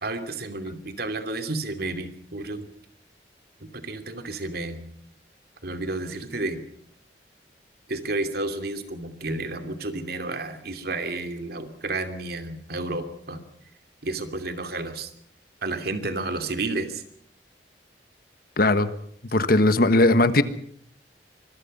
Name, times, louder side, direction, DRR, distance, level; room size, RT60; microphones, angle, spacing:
voice 1, 0.0-2.7 3.7-4.9 5.6-6.6 7.9-13.4 14.0-15.1 15.6-17.0, right 2 dB, 60° right, 8 dB, 2.7 m, -31 dB
voice 2, 18.6-18.9 19.3-20.4, left 2 dB, 55° left, 12 dB, 1.5 m, -18 dB
25.5 x 22.0 x 5.5 m, 0.63 s
head